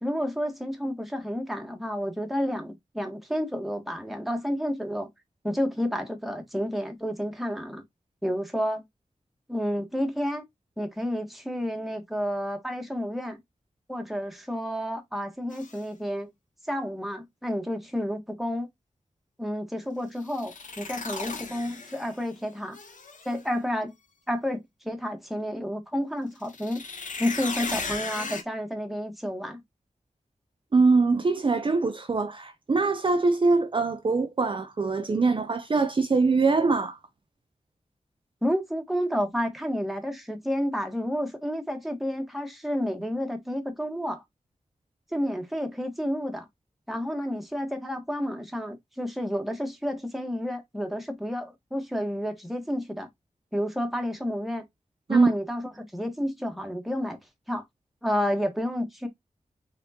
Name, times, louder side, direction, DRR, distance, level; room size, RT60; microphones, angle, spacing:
voice 1, 0.0-5.1 5.4-7.8 8.2-8.8 9.5-10.4 10.8-13.4 13.9-16.3 16.7-18.7 19.4-22.8 23.2-23.9 24.3-26.8 27.2-29.6 38.4-44.2 45.1-46.5 46.9-53.1 53.5-54.6 55.1-57.2 57.5-57.6 58.0-59.1, equal, ahead, 1.3 m, -30 dB
sound 1, 15.5-15.8 20.2-22.3 22.7-23.4 26.4-28.4, left 4 dB, 80° left, 0.9 m, -36 dB
voice 2, 30.7-37.0 55.1-55.3, right 4 dB, 40° right, 0.5 m, -23 dB
4.3 x 3.7 x 2.8 m
wide cardioid pair, 100°, 13 cm